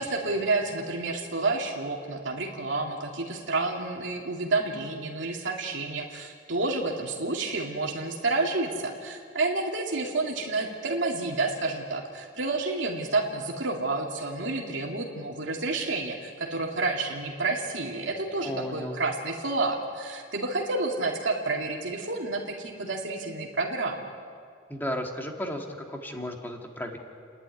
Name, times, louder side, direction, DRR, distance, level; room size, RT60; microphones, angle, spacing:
voice 1, 0.0-24.1, right 3 dB, 70° right, 0 dB, 2.3 m, -29 dB
voice 2, 18.4-19.0 24.7-27.0, equal, 10° left, 1 dB, 2.2 m, -34 dB
30.0 x 11.5 x 9.8 m, 2.3 s
head